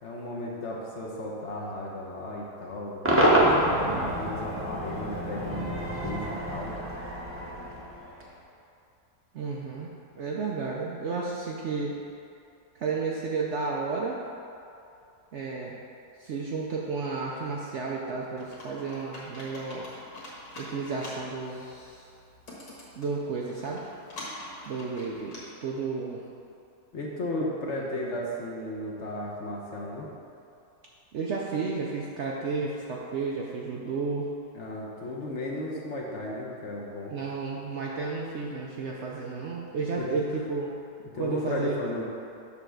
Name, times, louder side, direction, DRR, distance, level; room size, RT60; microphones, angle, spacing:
voice 1, 0.0-3.0 3.4-6.8 26.9-30.1 34.5-37.1 40.0-40.1 41.1-42.0, left 1 dB, 55° left, -3 dB, 1.1 m, -35 dB
Cheering / Crowd / Fireworks, 3.0-8.3, right 1 dB, 20° right, 0.3 m, -27 dB
voice 2, 9.3-12.0 12.8-14.2 15.3-15.8 16.2-19.9 20.6-21.6 23.0-23.8 24.7-26.2 27.8-27.9 31.1-34.3 37.1-40.7 41.2-41.8, right 4 dB, 65° right, -3 dB, 0.7 m, -32 dB
Computer keyboard, 18.4-25.4, left 1 dB, 75° left, 2.1 m, -45 dB
7.0 x 3.4 x 6.2 m, 2.6 s
omnidirectional pair, 1.7 m